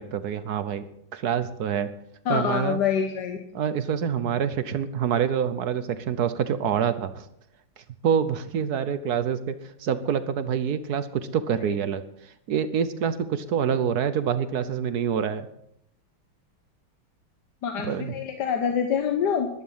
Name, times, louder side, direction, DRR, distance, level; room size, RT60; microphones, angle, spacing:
voice 1, 0.0-1.9 2.3-2.8 3.5-7.3 7.8-15.5 17.8-18.2, right 8 dB, 60° right, 12 dB, 1.1 m, -26 dB
voice 2, 2.3-3.6 17.6-19.5, left 7 dB, 60° left, 5 dB, 1.5 m, -26 dB
14.0 x 11.5 x 5.6 m, 0.76 s
omnidirectional pair, 2.3 m